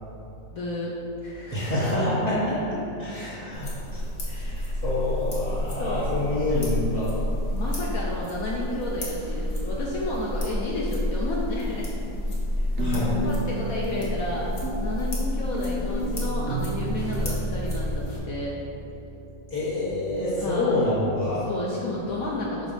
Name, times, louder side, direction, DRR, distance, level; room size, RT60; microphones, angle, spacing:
voice 1, 0.5-0.9 1.2-1.7 4.3-4.8 5.8-6.1 7.5-11.9 12.6-12.7 13.2-18.6 20.4-20.9 21.5-22.7, left 1 dB, 70° left, -4 dB, 0.9 m, -32 dB
voice 2, 1.5-4.0 4.3-4.5 4.8-7.1 12.8-13.1 19.5-21.4, left 1 dB, 10° left, -12 dB, 0.8 m, -27 dB
sound 1, 3.5-18.2, left 1 dB, 45° left, 1.5 m, -30 dB
sound 2, 11.7-12.3 12.8-19.7, right 1 dB, 90° right, 0.6 m, -33 dB
4.7 x 4.0 x 5.4 m, 2.8 s
omnidirectional pair, 2.0 m